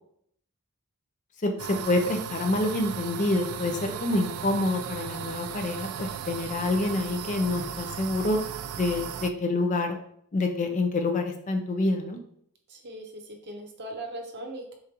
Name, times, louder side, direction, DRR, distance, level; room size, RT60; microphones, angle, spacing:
voice 1, 1.4-8.4 8.8-10.0 10.3-12.2, left 2 dB, 35° left, 5 dB, 0.5 m, -27 dB
sound 1, 1.6-9.3, right 8 dB, 80° right, 0.3 m, -36 dB
voice 2, 3.6-4.0 12.7-14.8, right 1 dB, 50° right, 3 dB, 0.8 m, -40 dB
6.8 x 2.5 x 2.9 m, 0.67 s
head